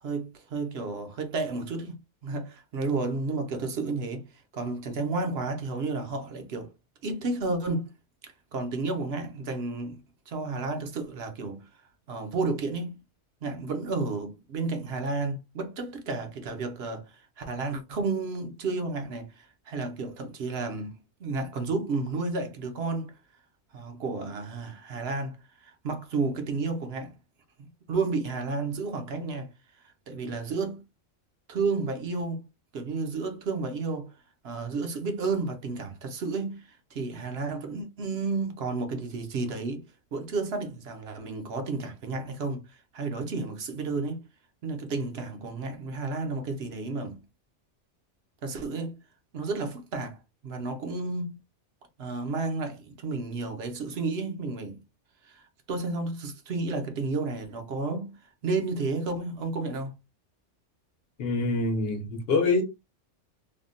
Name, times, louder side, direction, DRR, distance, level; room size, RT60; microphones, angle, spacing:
voice 1, 0.0-4.3 4.5-6.7 7.0-7.9 8.2-10.0 10.3-11.6 12.1-13.0 13.4-23.2 23.7-27.1 27.9-29.5 29.8-30.8 31.5-32.4 32.7-34.1 34.4-39.8 40.1-44.2 44.6-47.2 48.4-49.0 49.3-50.2 50.4-51.4 52.0-54.8 55.2-59.9, right 3 dB, 60° right, 0.9 m, -32 dB
voice 2, 61.2-62.6, left 3 dB, 60° left, 1.0 m, -25 dB
3.5 x 2.2 x 2.5 m
omnidirectional pair, 1.2 m